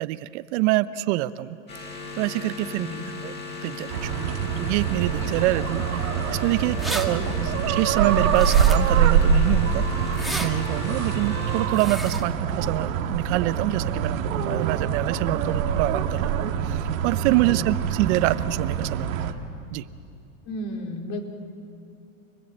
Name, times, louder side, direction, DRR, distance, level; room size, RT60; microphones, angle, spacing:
voice 1, 0.0-1.6 2.1-3.3 3.6-4.3 4.6-7.2 7.7-19.2 19.7-19.8, right 17 dB, 55° right, 14 dB, 0.8 m, -26 dB
sound 1, 1.7-11.7, left 5 dB, 25° left, 7.4 m, -37 dB
voice 2, 2.6-3.1 7.0-7.6 17.3-17.7 20.4-21.2, left 1 dB, 50° left, 2 dB, 4.6 m, -35 dB
sound 2, 3.9-19.3, right 7 dB, 75° right, 2.0 m, -25 dB
sound 3, 6.8-7.1 8.3-9.0 10.1-10.5 11.7-12.2, right 1 dB, ahead, 2.1 m, -32 dB
29.5 x 21.0 x 8.0 m, 2.4 s
hypercardioid pair, 120°, 41 cm